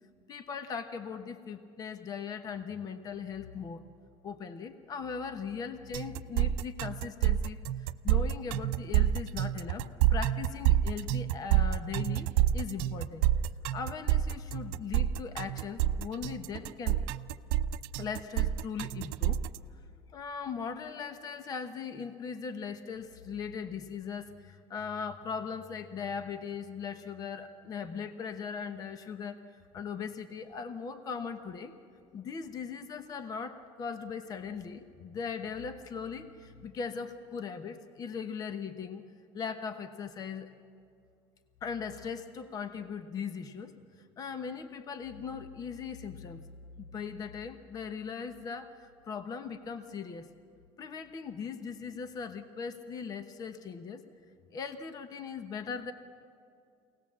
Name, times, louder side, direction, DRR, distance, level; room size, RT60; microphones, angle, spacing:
voice 1, 0.3-3.8 4.2-9.8 10.1-13.3 13.7-17.0 17.8-19.4 20.1-29.4 29.7-31.8 32.1-39.0 39.3-40.5 41.6-43.7 44.2-46.5 46.8-50.3 50.8-54.1 54.5-55.9, left 6 dB, 35° left, 9 dB, 1.1 m, -39 dB
sound 1, 5.9-19.6, right 12 dB, 80° right, 0.6 m, -28 dB
24.0 x 18.0 x 7.4 m, 2.4 s
cardioid pair, 140°, 11 cm